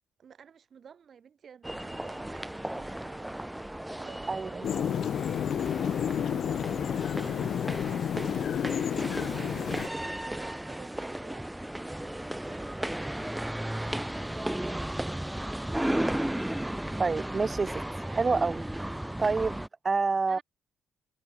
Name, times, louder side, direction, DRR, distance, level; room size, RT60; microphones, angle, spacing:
voice 1, 0.2-3.4 4.0-5.2 5.6-7.1 7.5-8.2 9.3-14.0 14.3-15.2 20.3-20.4, right 7 dB, 55° right, 6.6 m, -52 dB
sound 1, 1.6-19.7, right 1 dB, 5° right, 1.9 m, -35 dB
voice 2, 4.3-4.6 17.0-18.6 19.2-20.4, right 4 dB, 35° right, 0.4 m, -28 dB
sound 2, 4.6-9.9, left 9 dB, 65° left, 1.5 m, -30 dB
supercardioid pair, 65°, 0 cm